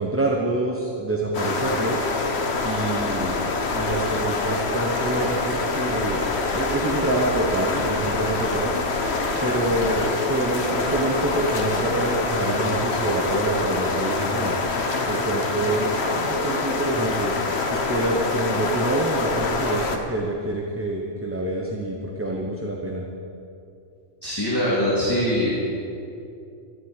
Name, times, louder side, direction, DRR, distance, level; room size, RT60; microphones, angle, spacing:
voice 1, 0.0-2.0 2.6-6.2 6.5-8.7 9.4-14.6 15.1-17.3 17.6-23.1, right 2 dB, 10° right, -1 dB, 1.0 m, -26 dB
sound 1, 1.3-20.0, left 3 dB, 65° left, 1.4 m, -25 dB
voice 2, 24.2-25.5, equal, 20° left, -8 dB, 2.5 m, -22 dB
14.0 x 7.7 x 8.9 m, 2.6 s
omnidirectional pair, 1.2 m